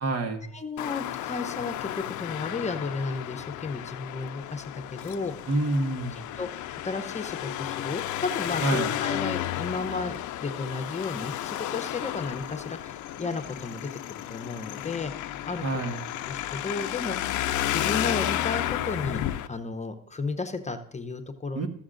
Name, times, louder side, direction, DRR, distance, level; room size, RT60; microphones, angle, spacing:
voice 1, 0.0-0.4 5.5-6.2 8.6-8.9 15.6-16.0 21.5-21.7, right 2 dB, 55° right, 4 dB, 1.3 m, -27 dB
voice 2, 0.5-5.5 6.4-10.1 10.4-15.1 15.5-15.6 16.3-17.3 17.7-21.7, left 3 dB, 25° left, 7 dB, 0.7 m, -33 dB
Traffic noise roadway noise, 0.8-19.5, left 13 dB, 80° left, 0.5 m, -32 dB
14.0 x 7.1 x 2.5 m, 0.66 s
cardioid pair, 90°, 30 cm